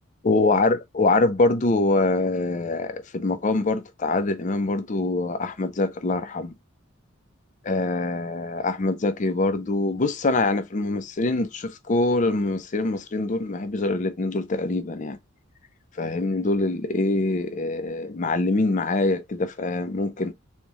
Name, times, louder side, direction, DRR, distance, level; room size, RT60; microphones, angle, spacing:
voice 1, 0.2-6.5 7.6-15.2 16.0-20.3, left 2 dB, 35° left, 0.5 m, -24 dB
4.3 x 3.0 x 2.2 m
head